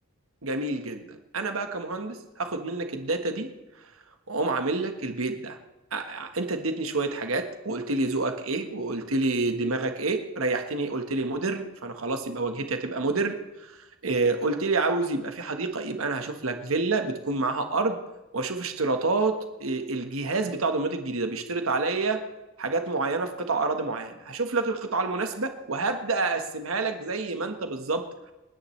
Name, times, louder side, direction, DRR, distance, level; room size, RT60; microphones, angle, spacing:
voice 1, 0.4-3.5 4.3-5.6 5.9-13.3 13.6-18.0 18.3-22.2 22.6-28.0, right 3 dB, 85° right, 6 dB, 1.4 m, -28 dB
30.0 x 10.0 x 3.3 m, 1.0 s
head